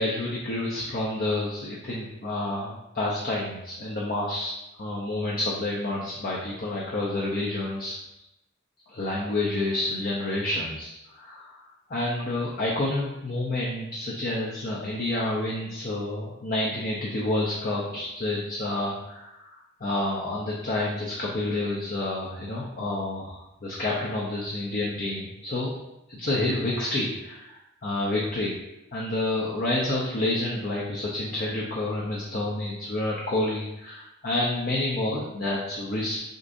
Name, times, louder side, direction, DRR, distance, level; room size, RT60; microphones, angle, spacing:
voice 1, 0.0-4.5 4.8-8.0 8.9-25.7 26.1-28.6 28.9-36.2, left 2 dB, 45° left, -4 dB, 0.6 m, -29 dB
6.4 x 2.6 x 2.6 m, 0.90 s
head